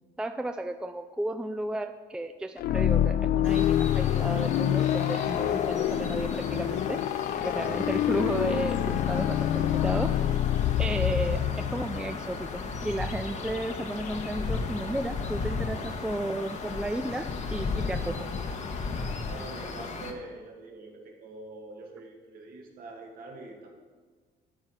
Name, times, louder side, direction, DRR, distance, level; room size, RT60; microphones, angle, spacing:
voice 1, 0.2-7.0 7.3-10.1 10.8-18.1, right 1 dB, 5° right, 8 dB, 0.4 m, -33 dB
sound 1, 2.6-12.3, left 11 dB, 60° left, 0.5 m, -26 dB
sound 2, 3.4-20.1, left 4 dB, 45° left, 1.3 m, -36 dB
voice 2, 19.2-23.7, right 2 dB, 60° right, 1 dB, 2.2 m, -44 dB
12.0 x 4.8 x 7.3 m, 1.5 s
cardioid pair, 110°, 17 cm